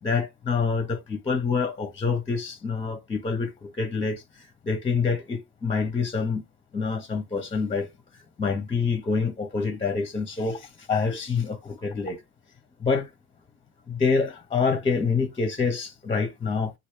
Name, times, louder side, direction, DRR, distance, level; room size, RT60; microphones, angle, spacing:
voice 1, 0.0-4.2 4.6-6.4 6.7-7.9 8.4-12.2 12.8-13.1 13.9-16.7, left 5 dB, 20° left, 0.7 m, -26 dB
3.1 x 2.6 x 3.2 m
supercardioid pair, 105°, 31 cm